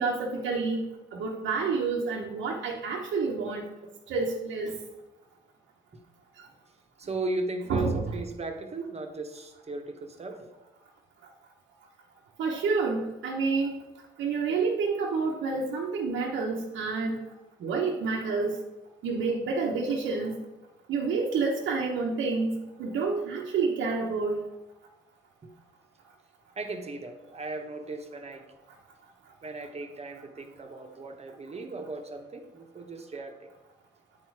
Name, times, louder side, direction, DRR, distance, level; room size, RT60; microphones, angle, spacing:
voice 1, 0.0-3.7 4.1-4.8 6.4-6.5 7.7-8.0 12.4-13.8 14.2-17.2 17.6-18.6 19.0-20.4 20.9-24.4, right 4 dB, 75° right, -2 dB, 1.0 m, -29 dB
voice 2, 7.0-10.5 25.4-25.5 26.6-28.4 29.4-33.4, right 2 dB, 30° right, 4 dB, 1.2 m, -36 dB
8.8 x 4.3 x 4.7 m, 1.1 s
cardioid pair, 90°, 20 cm